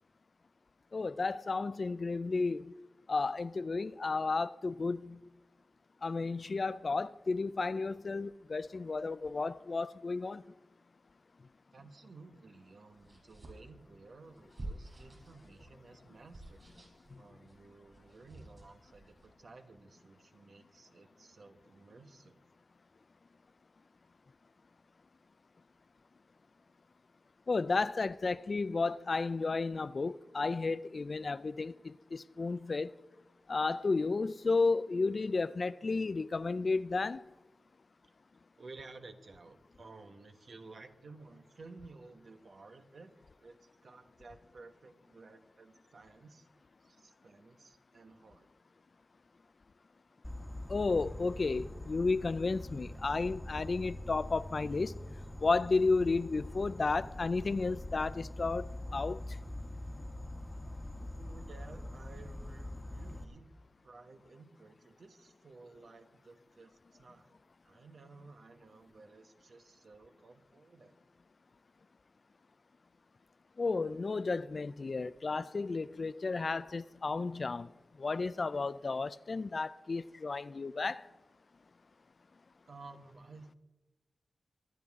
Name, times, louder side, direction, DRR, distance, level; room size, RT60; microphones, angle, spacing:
voice 1, 0.9-2.7 3.1-5.2 6.0-10.4 27.5-32.9 33.5-37.2 50.7-54.9 55.4-59.2 73.6-77.7 78.0-81.0, left 3 dB, 55° left, 0.4 m, -33 dB
voice 2, 11.7-22.4 38.6-43.1 43.4-46.5 46.8-48.5 60.9-63.5 63.8-67.4 67.6-71.0 82.7-83.5, right 3 dB, 70° right, 1.2 m, -54 dB
sound 1, 12.9-19.3, right 2 dB, 45° right, 5.7 m, -50 dB
Insect, 50.2-63.2, left 1 dB, 5° left, 1.3 m, -44 dB
23.5 x 9.4 x 3.7 m
wide cardioid pair, 75°, 0 cm